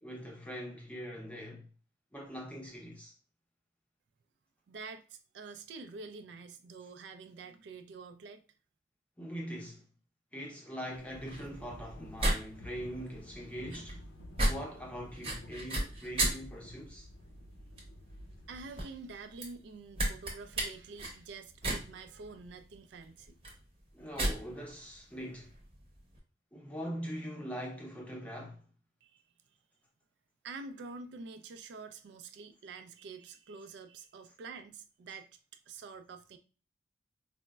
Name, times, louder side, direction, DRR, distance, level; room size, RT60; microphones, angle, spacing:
voice 1, 0.0-1.7 2.1-3.1 9.2-9.8 10.3-14.0 14.4-17.1 23.9-25.5 26.5-28.6, equal, 5° left, 0.6 m, -42 dB
voice 2, 4.7-8.4 18.5-23.4 29.0-29.2 30.4-35.3 35.7-36.4, right 4 dB, 70° right, 0.3 m, -47 dB
sound 1, 10.9-26.2, right 1 dB, 30° right, 0.8 m, -37 dB
sound 2, 11.1-18.8, left 1 dB, 80° left, 0.6 m, -51 dB
4.1 x 2.0 x 2.2 m
head